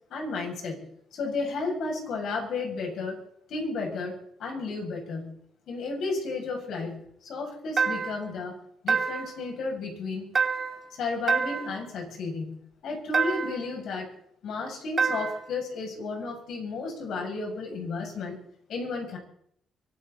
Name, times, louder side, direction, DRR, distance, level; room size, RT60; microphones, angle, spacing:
voice 1, 0.1-0.8 1.1-3.2 3.5-4.1 4.4-5.3 5.7-8.5 8.8-10.3 11.0-12.6 12.8-14.1 14.4-18.4 18.7-19.2, left 3 dB, 75° left, 0 dB, 7.8 m, -33 dB
sound 1, 7.8-8.3 8.9-9.4 10.4-10.9 11.3-11.8 13.1-13.7 15.0-15.5, right 5 dB, 40° right, 1.9 m, -27 dB
24.5 x 14.0 x 4.3 m, 0.66 s
cardioid pair, 90°, 0 cm